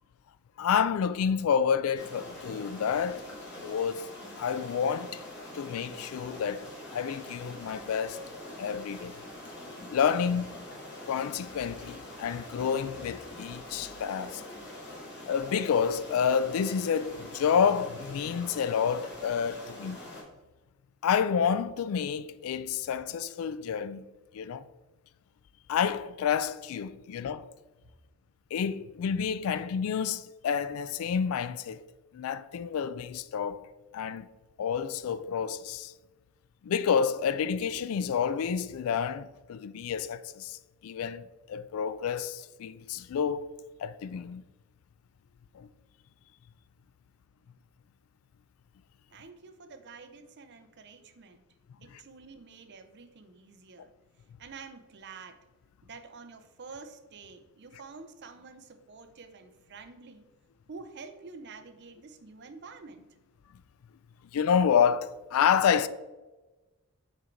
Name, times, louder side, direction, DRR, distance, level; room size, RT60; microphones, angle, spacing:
voice 1, 0.6-3.2 3.6-4.0 4.4-5.2 5.5-8.2 8.6-9.1 9.9-10.5 11.1-14.4 15.3-20.0 21.0-24.0 24.3-24.6 25.7-27.5 28.5-31.8 32.1-33.7 33.9-34.3 34.6-35.9 36.6-41.2 41.5-43.5 43.8-44.4 45.5-45.7 53.8-53.9 64.3-65.9, left 7 dB, 75° left, 0.3 m, -29 dB
sound 1, 1.9-20.2, left 1 dB, 55° left, 1.9 m, -44 dB
voice 2, 49.1-51.4 51.8-53.9 54.4-55.4 55.8-60.3 60.7-63.1, right 4 dB, 55° right, 0.6 m, -48 dB
6.4 x 4.5 x 3.8 m
head